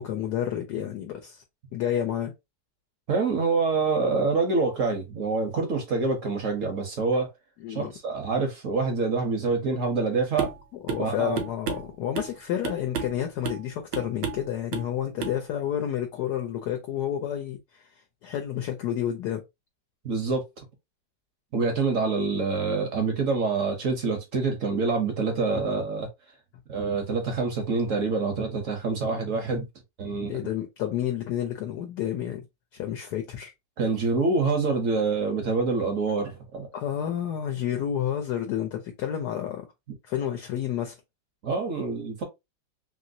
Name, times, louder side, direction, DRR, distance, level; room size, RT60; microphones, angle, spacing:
voice 1, 0.0-1.4 1.7-2.3 7.6-7.9 10.9-17.8 18.2-19.4 30.3-32.4 32.7-33.5 36.7-39.7 40.0-40.9, left 10 dB, 70° left, 1.1 m, -30 dB
voice 2, 3.1-7.3 7.7-10.5 11.0-11.4 20.0-20.4 21.5-26.1 26.7-29.7 30.0-30.4 33.8-36.7 41.4-42.2, right 4 dB, 55° right, 0.9 m, -26 dB
sound 1, 10.4-10.6 10.9-11.1 11.4-12.4 12.6-13.2 13.4-13.7 13.9-14.5 14.7-14.9 15.2-15.4, right 7 dB, 75° right, 1.3 m, -32 dB
3.1 x 2.8 x 2.6 m
omnidirectional pair, 2.0 m